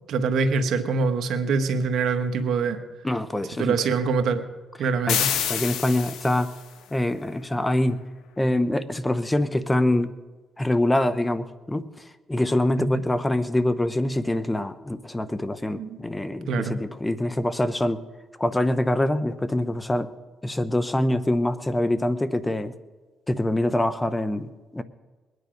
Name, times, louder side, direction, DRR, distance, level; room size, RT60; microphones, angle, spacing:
voice 1, 0.1-2.8 3.6-4.4 4.8-5.3 12.8-12.9 15.7-16.0 16.5-16.8, right 4 dB, 75° right, 7 dB, 1.3 m, -24 dB
voice 2, 3.0-3.8 5.1-5.2 5.4-6.5 6.9-8.0 8.4-10.1 10.6-11.9 12.3-18.0 18.4-20.1 20.4-22.7 23.3-24.8, left 1 dB, 15° left, 13 dB, 0.8 m, -24 dB
sound 1, 5.1-6.6, left 9 dB, 85° left, 1.1 m, -27 dB
21.0 x 9.8 x 5.2 m, 1.3 s
cardioid pair, 90°, 0 cm